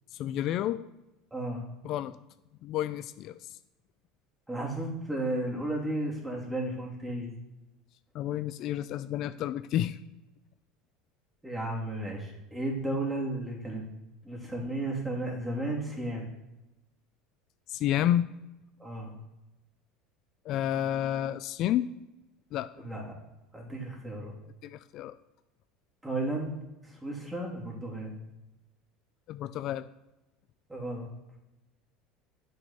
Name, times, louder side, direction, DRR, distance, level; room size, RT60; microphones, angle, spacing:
voice 1, 0.2-0.8 1.8-2.2 2.6-3.4 8.1-10.0 17.7-18.3 20.5-21.9 22.5-22.7 24.6-25.2 29.3-29.9, left 11 dB, 55° left, 13 dB, 0.4 m, -30 dB
voice 2, 1.3-1.6 4.5-7.3 11.4-13.8 14.2-16.3 18.8-19.1 22.8-23.1 23.5-24.3 26.0-26.6 26.8-28.1 30.7-31.1, right 1 dB, 10° right, -1 dB, 3.0 m, -34 dB
8.2 x 5.3 x 5.6 m, 0.99 s
hypercardioid pair, 90°, 0 cm